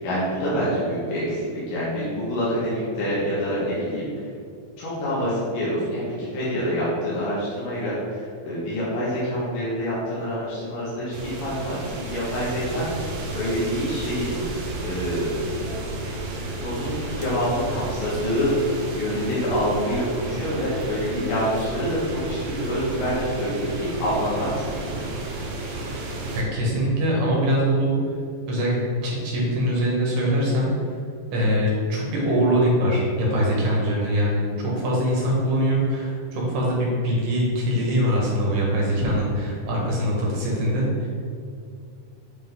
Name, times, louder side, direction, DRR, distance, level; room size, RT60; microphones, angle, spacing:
voice 1, 0.0-4.1 4.8-14.4 14.8-15.3 16.6-25.1, equal, 75° left, -9 dB, 3.0 m, -26 dB
sound 1, 11.1-26.4, right 2 dB, 90° right, 2.7 m, -32 dB
voice 2, 26.3-27.9 28.5-28.7 29.0-30.7 31.3-41.1, equal, 70° right, -4 dB, 2.8 m, -23 dB
8.3 x 3.9 x 3.6 m, 2.3 s
omnidirectional pair, 4.0 m